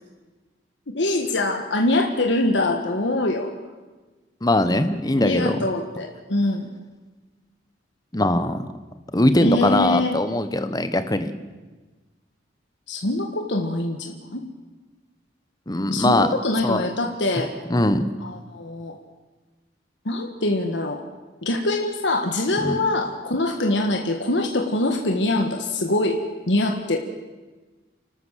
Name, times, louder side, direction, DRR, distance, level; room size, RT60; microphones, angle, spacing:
voice 1, 0.9-3.5 5.2-6.7 9.4-10.1 12.9-14.4 15.9-17.5 18.2-19.0 20.0-21.0 21.4-26.2 26.5-27.0, left 2 dB, 75° left, 3 dB, 1.6 m, -24 dB
voice 2, 4.4-5.6 8.1-8.6 9.1-11.3 15.7-16.3 16.6-16.8 17.7-18.1 22.6-22.8, left 1 dB, 20° left, 10 dB, 1.1 m, -21 dB
29.0 x 13.0 x 7.5 m, 1.2 s
head